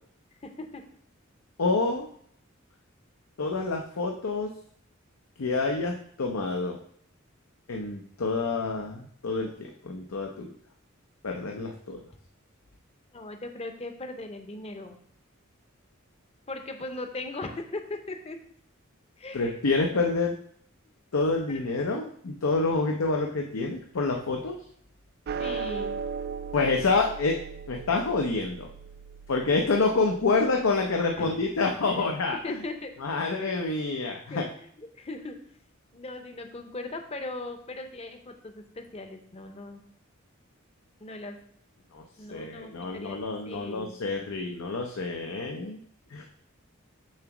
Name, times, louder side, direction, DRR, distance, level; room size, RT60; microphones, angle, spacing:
voice 1, 0.4-0.8 13.1-15.0 16.5-18.4 19.2-19.5 25.4-26.0 31.2-31.4 31.9-32.1 32.4-33.5 34.3-35.4 35.9-39.8 41.0-41.4 42.2-43.2 43.4-43.9, left 2 dB, 30° left, 6 dB, 0.7 m, -39 dB
voice 2, 1.6-2.1 3.4-4.5 5.4-6.8 7.7-10.5 11.2-12.0 19.3-20.4 21.1-24.6 26.5-27.4 27.7-28.7 29.3-32.6 33.0-34.5 41.9-42.0 42.3-45.8 46.1-46.2, left 3 dB, 85° left, 1 dB, 0.7 m, -27 dB
sound 1, 25.3-31.8, right 5 dB, 50° right, 0.3 m, -38 dB
7.3 x 3.0 x 5.9 m, 0.62 s
head